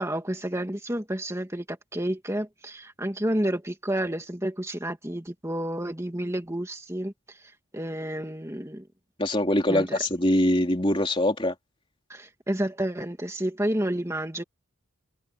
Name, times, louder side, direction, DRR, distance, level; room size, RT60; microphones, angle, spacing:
voice 1, 0.0-7.4 7.7-8.9 9.7-10.0 12.1-14.4, right 1 dB, 15° right, 2.5 m, -30 dB
voice 2, 9.2-11.5, left 1 dB, 25° left, 3.4 m, -23 dB
head